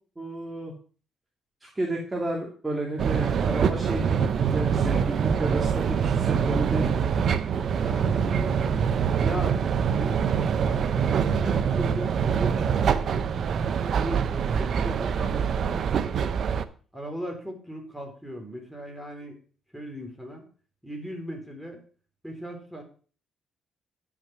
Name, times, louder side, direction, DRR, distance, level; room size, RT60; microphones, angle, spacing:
voice 1, 0.2-0.7 1.6-4.1 4.4-7.2 7.7-7.8, right 1 dB, 15° right, -1 dB, 2.6 m, -32 dB
sound 1, 3.0-16.6, right 7 dB, 60° right, 0.7 m, -25 dB
voice 2, 7.8-8.8 9.2-9.6 9.9-10.3 10.6-13.2 13.9-15.8 16.9-19.4 19.7-20.4 20.8-21.8 22.2-22.8, equal, ahead, 1 dB, 3.7 m, -37 dB
10.0 x 6.1 x 6.1 m, 0.40 s
cardioid pair, 90°, 0 cm